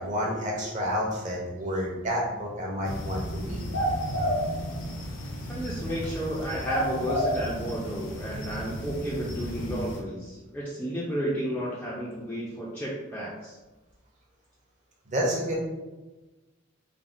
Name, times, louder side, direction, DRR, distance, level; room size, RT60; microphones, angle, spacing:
voice 1, 0.0-3.7 15.1-15.6, equal, 35° right, -2 dB, 0.6 m, -30 dB
sound 1, 2.8-10.0, equal, 80° left, 0.6 m, -32 dB
voice 2, 5.5-13.6, equal, 10° left, -7 dB, 0.3 m, -32 dB
3.4 x 2.0 x 2.5 m, 1.1 s
head